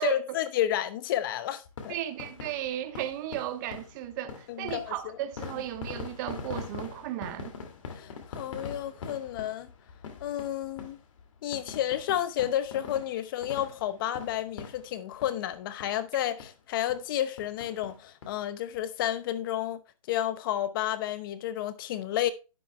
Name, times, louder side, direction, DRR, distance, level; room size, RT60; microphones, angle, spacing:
voice 1, 0.0-2.0 4.5-5.2 7.9-9.7 10.2-11.0 11.4-19.8 20.1-22.3, left 12 dB, 35° left, 0.8 m, -31 dB
sound 1, 1.7-15.5 15.8-16.0 16.4-16.5 16.9-17.1 17.4-18.3 18.7-18.8 19.0-19.1, left 5 dB, 55° left, 2.3 m, -43 dB
voice 2, 1.9-7.5, right 12 dB, 30° right, 1.1 m, -35 dB
11.5 x 9.4 x 2.2 m
hypercardioid pair, 145°, 19 cm